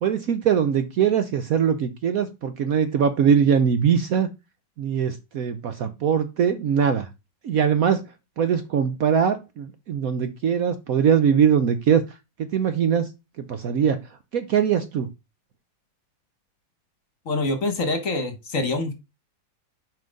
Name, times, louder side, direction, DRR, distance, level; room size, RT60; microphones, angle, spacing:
voice 1, 0.0-4.3 4.8-7.1 7.4-8.0 8.4-13.1 13.4-14.0 14.3-15.1, right 7 dB, 65° right, 10 dB, 1.0 m, -22 dB
voice 2, 17.3-18.9, left 2 dB, 50° left, 8 dB, 1.4 m, -25 dB
5.7 x 5.1 x 5.1 m, 0.25 s
omnidirectional pair, 2.0 m